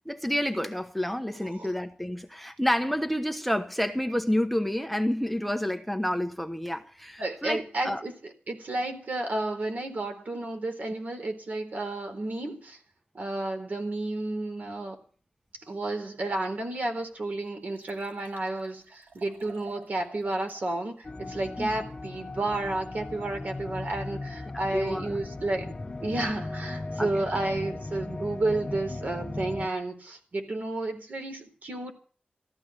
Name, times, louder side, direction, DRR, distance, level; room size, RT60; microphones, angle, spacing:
voice 1, 0.1-8.0 21.6-21.7 24.7-25.2 27.0-27.1, left 1 dB, ahead, 1.1 m, -29 dB
voice 2, 7.2-12.8 13.1-15.0 15.7-25.7 26.0-31.9, right 2 dB, 60° right, 4.0 m, -32 dB
Liquid, 16.6-16.7 17.1-17.2 17.4-20.6 21.0-21.1, right 3 dB, 80° right, 4.5 m, -52 dB
sound 1, 21.0-29.7, left 2 dB, 30° left, 1.2 m, -37 dB
15.5 x 13.5 x 6.5 m
wide cardioid pair, 125°, 3 cm